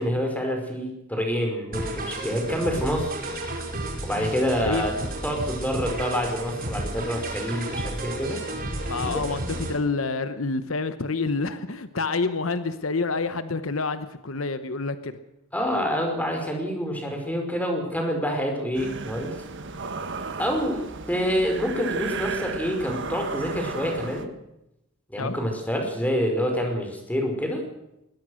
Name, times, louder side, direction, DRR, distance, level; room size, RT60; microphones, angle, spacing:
voice 1, 0.0-3.1 4.0-4.9 5.2-8.4 9.1-9.2 15.5-19.4 20.4-24.3 25.1-27.6, equal, 10° left, 3 dB, 4.9 m, -27 dB
sound 1, 1.7-9.7, right 1 dB, 45° right, 5.2 m, -32 dB
voice 2, 8.9-15.1 25.2-25.3, left 3 dB, 75° left, 11 dB, 1.1 m, -28 dB
sound 2, 18.7-24.3, right 4 dB, 60° right, 1.6 m, -34 dB
21.0 x 19.5 x 6.4 m, 0.87 s
head